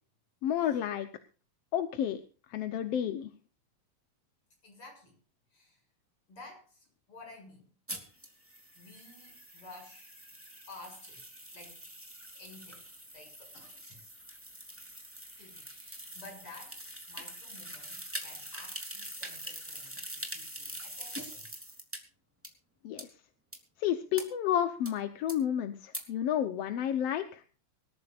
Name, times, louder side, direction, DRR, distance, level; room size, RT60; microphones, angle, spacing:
voice 1, 0.4-1.1 1.7-2.2 2.5-3.3 22.8-23.1 23.8-27.4, left 10 dB, 65° left, 9 dB, 2.0 m, -31 dB
voice 2, 4.6-5.2 5.5-5.8 6.3-7.7 8.8-10.1 10.7-11.2 11.5-11.8 12.3-12.8 13.1-14.0 15.4-16.8 17.1-21.5, left 2 dB, 45° left, 2 dB, 8.3 m, -52 dB
sound 1, 7.9-22.0 22.4-22.5 23.0-23.1 23.5-23.6 24.2-24.3 24.9-25.0 25.3-25.4 25.9-26.0, equal, 5° right, 2.7 m, -44 dB
25.0 x 13.5 x 2.5 m, 0.36 s
omnidirectional pair, 3.3 m